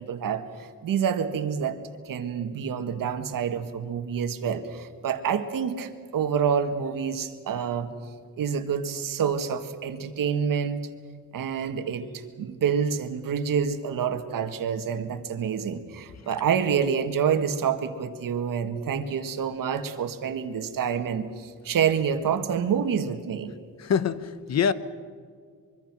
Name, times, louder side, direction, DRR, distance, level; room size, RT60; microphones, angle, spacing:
voice 1, 0.0-1.8 2.0-7.9 8.4-10.9 11.3-23.5, right 7 dB, 70° right, 1.8 m, -27 dB
voice 2, 23.8-24.7, left 7 dB, 50° left, 0.9 m, -25 dB
24.5 x 23.5 x 6.1 m
wide cardioid pair, 175°, 34 cm